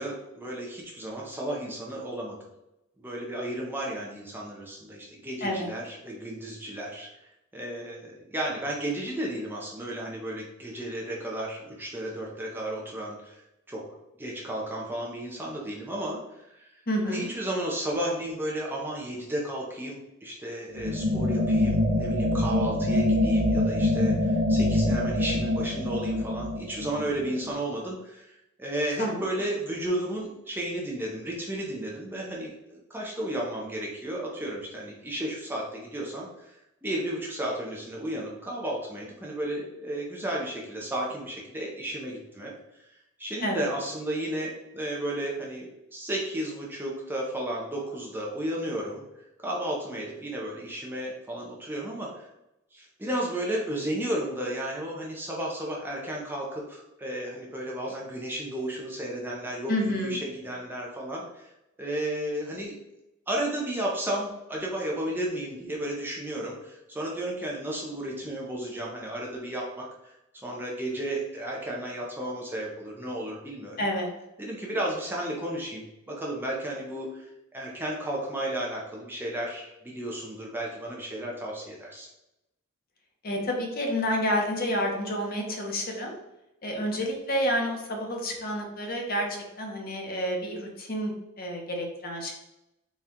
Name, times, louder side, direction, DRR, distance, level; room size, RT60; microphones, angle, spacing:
voice 1, 0.0-2.4 3.0-7.1 7.5-13.4 13.7-13.8 14.2-16.7 17.0-42.5 42.8-42.9 43.2-49.0 49.4-52.3 52.7-61.5 61.8-62.7 63.3-70.1 70.4-73.9 74.4-82.1, right 1 dB, 10° right, -3 dB, 0.5 m, -33 dB
voice 2, 16.9-17.3 29.0-29.2 43.4-43.6 59.7-60.2 73.8-74.1 83.2-86.1 86.6-92.3, equal, 45° left, 1 dB, 0.7 m, -29 dB
sound 1, 20.8-27.5, left 1 dB, 55° right, 0.7 m, -25 dB
4.2 x 2.3 x 3.6 m, 0.90 s
head